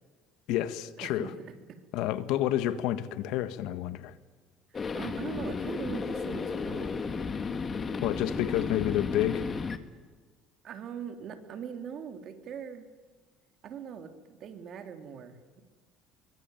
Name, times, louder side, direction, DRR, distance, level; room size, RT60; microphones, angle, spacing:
voice 1, 0.5-1.3 1.9-4.2 8.0-9.4, left 13 dB, 75° left, 12 dB, 1.6 m, -29 dB
voice 2, 1.0-1.8 4.9-7.2 10.6-12.9 13.6-14.1 14.4-15.6, right 7 dB, 50° right, 6 dB, 3.4 m, -41 dB
sound 1, 4.7-9.8, left 5 dB, 30° left, 1.9 m, -34 dB
23.5 x 23.5 x 9.2 m, 1.4 s
cardioid pair, 110°, 0 cm